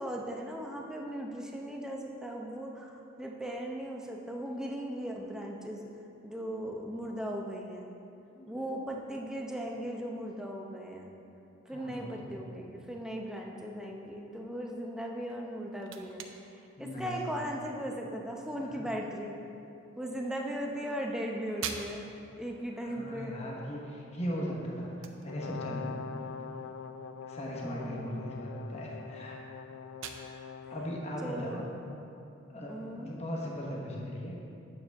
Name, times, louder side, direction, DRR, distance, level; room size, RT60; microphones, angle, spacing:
voice 1, 0.0-5.8 6.2-7.9 8.5-11.1 11.7-16.2 16.8-19.4 20.0-22.1 22.4-23.3 27.6-28.2 31.2-31.7 32.7-33.1, equal, 5° right, -1 dB, 0.6 m, -38 dB
voice 2, 8.3-8.8 11.7-12.4 16.8-17.4 18.6-18.8 22.8-25.9 27.3-29.4 30.1-30.4 30.7-31.6 32.5-34.4, equal, 35° left, -3 dB, 1.1 m, -38 dB
sound 1, 15.3-32.9, right 7 dB, 80° right, 0.5 m, -49 dB
Brass instrument, 25.3-31.1, left 6 dB, 90° left, 0.4 m, -43 dB
8.8 x 6.9 x 3.5 m, 2.7 s
head